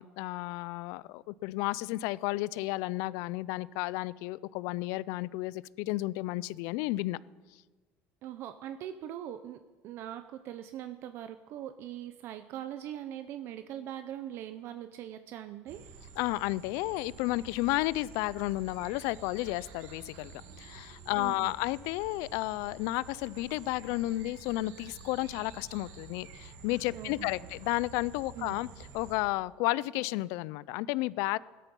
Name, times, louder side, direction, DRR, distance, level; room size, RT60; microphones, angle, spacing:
voice 1, 0.0-7.2 16.2-28.7 28.9-31.4, left 19 dB, 75° left, 21 dB, 0.4 m, -32 dB
voice 2, 8.2-16.0 21.2-21.5 26.9-27.3 28.3-28.6, right 11 dB, 50° right, 10 dB, 0.6 m, -41 dB
sound 1, 15.7-29.1, right 5 dB, 65° right, 2.3 m, -50 dB
17.0 x 12.5 x 5.3 m, 1.3 s
cardioid pair, 165°, 5 cm